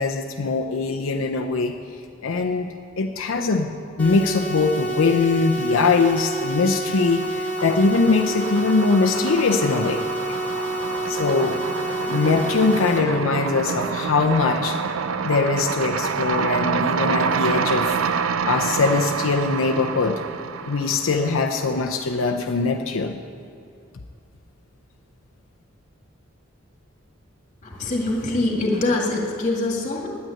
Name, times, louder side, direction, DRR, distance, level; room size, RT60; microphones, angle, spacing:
voice 1, 0.0-1.8 2.2-3.7 4.0-10.0 11.1-11.6 12.1-14.8 15.2-18.0 18.4-20.2 20.7-23.2, left 4 dB, 80° left, 3 dB, 0.6 m, -22 dB
sound 1, 4.0-13.0, right 1 dB, 10° left, 1.7 m, -28 dB
sound 2, 5.7-6.4 6.7-21.9, right 6 dB, 85° right, 0.5 m, -27 dB
voice 2, 27.6-30.1, left 2 dB, 40° left, 0 dB, 1.9 m, -24 dB
9.2 x 9.1 x 9.0 m, 2.4 s
head